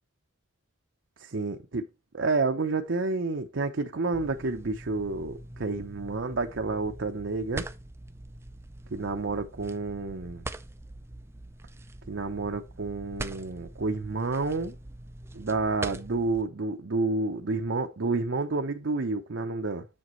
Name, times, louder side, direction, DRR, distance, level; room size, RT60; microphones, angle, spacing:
voice 1, 1.2-1.8 2.1-7.6 8.9-10.4 12.1-14.8 15.3-19.9, right 3 dB, 60° right, 0.7 m, -30 dB
sound 1, 4.1-16.4, right 2 dB, 10° right, 0.4 m, -43 dB
7.5 x 7.1 x 3.1 m
head